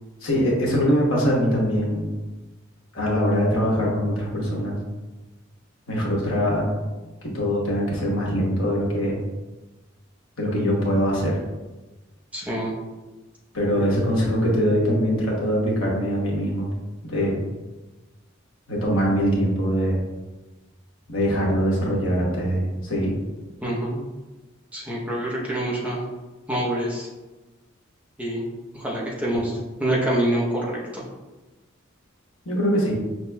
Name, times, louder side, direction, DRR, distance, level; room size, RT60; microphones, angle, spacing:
voice 1, 0.2-2.1 2.9-4.8 5.9-6.7 7.3-9.2 10.4-11.4 13.5-16.7 17.1-17.4 18.7-20.0 21.1-23.1 32.4-32.9, equal, 85° left, -3 dB, 1.1 m, -22 dB
voice 2, 12.3-12.7 13.7-13.8 23.6-24.0 24.7-26.0 26.5-27.1 28.2-28.4 28.7-29.5 29.8-31.0, right 1 dB, 5° right, -4 dB, 0.7 m, -26 dB
5.8 x 2.9 x 2.2 m, 1.2 s
head